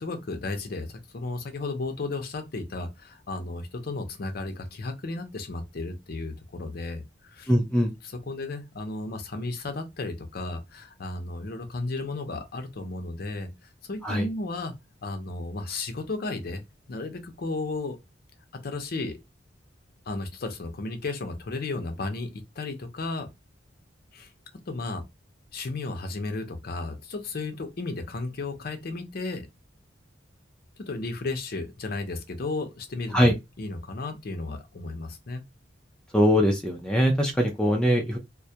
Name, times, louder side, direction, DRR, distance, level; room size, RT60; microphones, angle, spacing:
voice 1, 0.0-7.5 8.0-14.7 15.0-16.6 16.9-18.0 18.6-19.2 20.1-23.3 24.1-24.3 24.7-25.0 25.5-29.5 30.8-35.4, left 3 dB, 55° left, 0.5 m, -34 dB
voice 2, 7.5-7.9 14.0-14.3 33.1-33.3 36.1-38.2, equal, 5° left, 0.3 m, -22 dB
2.2 x 2.1 x 2.7 m
head